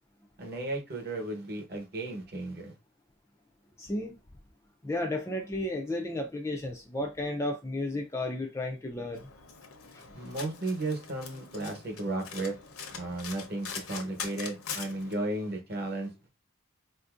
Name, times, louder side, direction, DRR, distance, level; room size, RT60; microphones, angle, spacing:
voice 1, 0.4-2.7 10.1-12.5 12.9-16.3, right 2 dB, 45° right, 0.9 m, -34 dB
voice 2, 3.8-4.1 4.8-9.3 9.9-10.0, left 1 dB, 15° left, 0.3 m, -33 dB
Domestic sounds home sounds, 9.1-15.1, left 6 dB, 75° left, 0.8 m, -43 dB
4.2 x 2.6 x 2.4 m
head